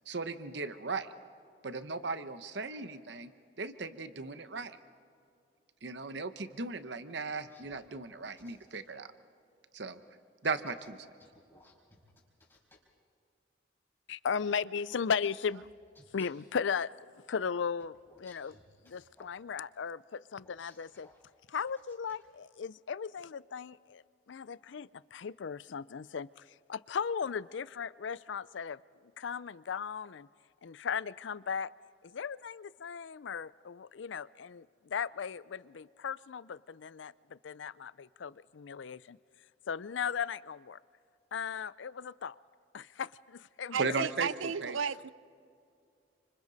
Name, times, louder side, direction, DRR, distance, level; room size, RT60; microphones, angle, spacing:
voice 1, 0.1-1.1 1.6-3.3 3.6-4.8 5.8-9.1 9.7-10.0 10.4-11.1 43.8-44.3 44.6-44.8, right 4 dB, 60° right, 1.0 m, -37 dB
sound 1, 7.3-8.8 10.4-12.8 14.9-16.5 17.8-19.3 20.4-21.2 21.7-22.2, left 2 dB, 10° left, 4.3 m, -62 dB
voice 2, 14.1-15.7 16.1-16.9 17.3-18.6 18.8-21.1 21.5-30.3 30.6-31.7 32.0-39.2 39.7-40.8 41.3-42.4 42.7-43.8, left 6 dB, 70° left, 0.4 m, -37 dB
voice 3, 43.7-45.1, right 6 dB, 85° right, 0.5 m, -34 dB
30.0 x 26.5 x 4.1 m
head